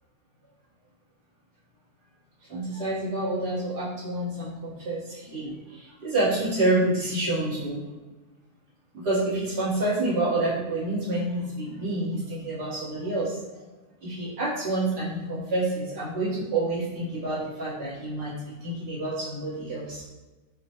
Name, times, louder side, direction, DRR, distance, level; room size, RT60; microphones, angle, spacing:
voice 1, 2.5-7.8 8.9-13.4 14.0-20.1, right 2 dB, 70° right, -10 dB, 2.3 m, -28 dB
6.7 x 2.3 x 3.0 m, 1.2 s
omnidirectional pair, 1.8 m